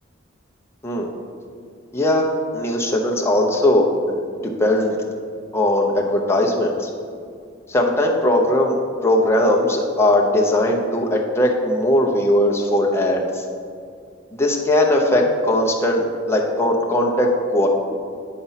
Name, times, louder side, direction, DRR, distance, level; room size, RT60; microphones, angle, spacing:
voice 1, 1.9-5.0 5.5-6.9 7.7-13.4 14.3-17.7, left 1 dB, 15° left, -1 dB, 0.7 m, -19 dB
9.3 x 4.1 x 5.7 m, 2.3 s
head